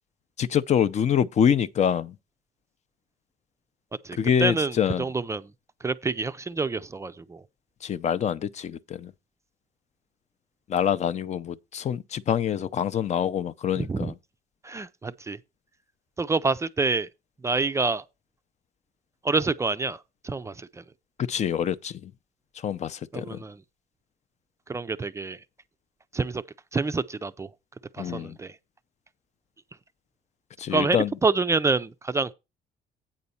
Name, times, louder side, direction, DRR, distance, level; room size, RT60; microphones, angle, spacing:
voice 1, 0.4-2.1 4.2-5.1 7.8-9.1 10.7-14.1 21.2-22.1 22.6-23.4 28.0-28.4 30.6-31.1, left 8 dB, 40° left, 0.6 m, -25 dB
voice 2, 4.0-5.4 5.8-7.4 13.8-14.1 14.6-15.4 16.2-17.1 17.4-18.0 19.2-20.8 23.1-23.6 24.7-25.4 26.1-26.4 26.7-27.5 27.9-28.5 30.7-31.0 31.2-32.3, right 3 dB, 15° right, 0.4 m, -27 dB
8.8 x 4.0 x 7.0 m
cardioid pair, 110°, 17 cm